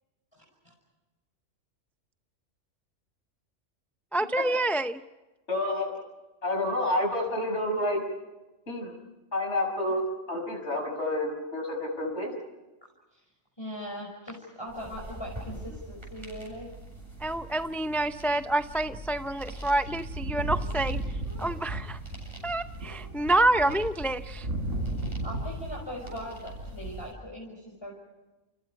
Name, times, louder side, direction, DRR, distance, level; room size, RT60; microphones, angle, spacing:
voice 1, 0.4-0.7 13.1-13.2 13.6-16.7 25.2-27.9, equal, 20° left, -2 dB, 5.7 m, -40 dB
voice 2, 4.1-5.0 17.2-21.0 21.4-22.0 22.4-24.5, right 1 dB, ahead, 9 dB, 0.4 m, -27 dB
voice 3, 5.5-6.0 6.4-8.0 8.7-8.9 9.3-12.3, left 1 dB, 65° left, 3 dB, 6.5 m, -29 dB
sound 1, 14.7-27.1, right 1 dB, 20° right, 7.7 m, -44 dB
sound 2, 19.9-25.8 26.1-27.0, right 1 dB, 90° right, 4.7 m, -35 dB
30.0 x 30.0 x 4.8 m, 1.1 s
omnidirectional pair, 1.3 m